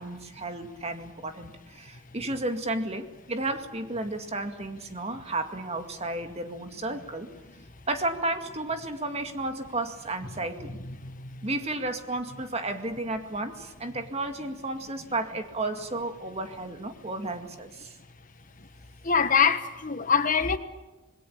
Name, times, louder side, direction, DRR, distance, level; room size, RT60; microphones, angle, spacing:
voice 1, 0.0-7.3 7.9-10.8 11.4-17.9, right 2 dB, 35° right, 2.2 m, -33 dB
voice 2, 10.8-11.5 19.0-20.6, left 6 dB, 45° left, 1.4 m, -24 dB
26.5 x 21.5 x 8.7 m
head